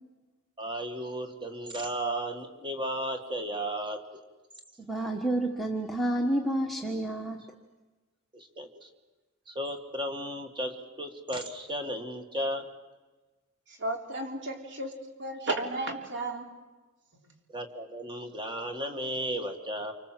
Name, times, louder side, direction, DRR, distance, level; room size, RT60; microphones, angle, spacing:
voice 1, 0.6-4.0 8.3-8.9 9.5-12.7 17.5-19.9, right 1 dB, 20° right, 2.0 m, -34 dB
voice 2, 4.9-7.4, right 1 dB, ahead, 1.5 m, -29 dB
voice 3, 13.7-16.5, right 2 dB, 55° right, 3.7 m, -34 dB
28.0 x 25.5 x 7.7 m
head